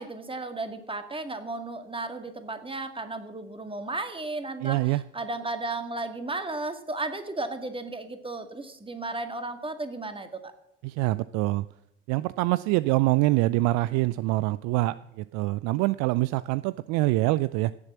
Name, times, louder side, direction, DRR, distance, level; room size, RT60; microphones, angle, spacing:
voice 1, 0.0-4.8 5.1-10.3, right 2 dB, 15° right, 8 dB, 2.1 m, -34 dB
voice 2, 4.6-5.0 10.8-11.7 12.1-17.7, right 19 dB, 55° right, 18 dB, 0.5 m, -25 dB
17.0 x 7.3 x 7.5 m, 0.80 s
figure-of-eight pair, 50°, 33 cm